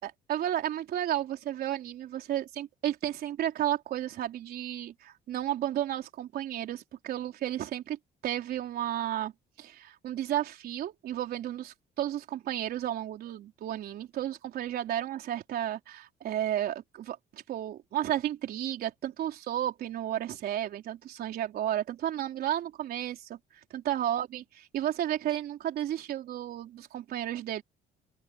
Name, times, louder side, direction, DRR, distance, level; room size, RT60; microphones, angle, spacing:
voice 1, 0.0-9.3 9.6-24.4 24.7-27.6, right 12 dB, 65° right, 4.1 m, -33 dB
open air
cardioid pair, 110°, 17 cm